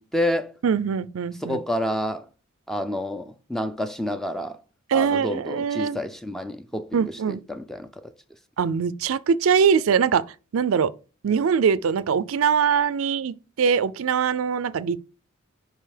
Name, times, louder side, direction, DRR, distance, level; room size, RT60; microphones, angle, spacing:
voice 1, 0.0-0.5 1.4-2.3 2.7-4.6 4.9-8.1, equal, ahead, 0.4 m, -29 dB
voice 2, 0.6-1.6 4.9-6.0 6.9-7.4 8.6-10.2 10.5-10.9 11.2-15.0, right 6 dB, 75° right, 0.4 m, -22 dB
5.5 x 5.0 x 5.0 m
head